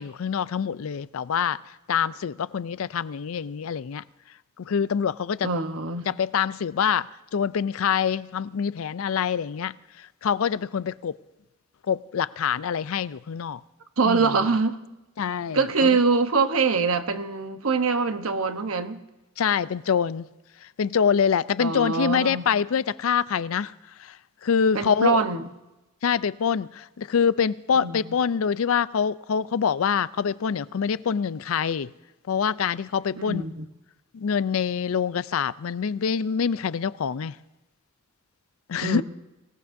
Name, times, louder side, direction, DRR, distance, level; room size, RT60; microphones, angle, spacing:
voice 1, 0.0-1.6 1.9-4.0 4.6-5.5 6.1-11.2 11.9-13.6 14.0-14.3 15.2-16.0 19.4-20.3 20.6-23.7 24.0-24.2 24.4-25.2 26.0-31.9 32.3-33.4 34.1-37.4 38.7-39.0, left 7 dB, 75° left, 0.4 m, -25 dB
voice 2, 5.4-6.1 14.0-14.8 15.5-19.0 21.6-22.5 24.7-25.5 27.8-28.1 33.2-33.6 38.8-39.0, right 4 dB, 85° right, 1.0 m, -24 dB
23.5 x 17.0 x 2.7 m
head